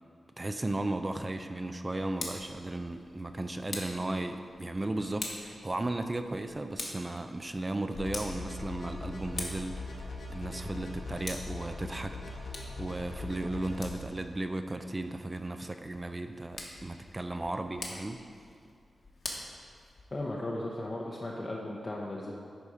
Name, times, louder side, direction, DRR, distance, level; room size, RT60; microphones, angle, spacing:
voice 1, 0.4-12.2 12.4-18.2, right 2 dB, 20° right, 7 dB, 0.4 m, -35 dB
Tick, 1.9-20.3, left 2 dB, 50° left, 1.2 m, -46 dB
sound 1, 7.9-13.9, left 3 dB, 85° left, 1.3 m, -41 dB
voice 2, 20.1-22.3, left 1 dB, 30° left, -4 dB, 0.7 m, -36 dB
10.5 x 4.2 x 4.9 m, 2.3 s
wide cardioid pair, 125°, 0 cm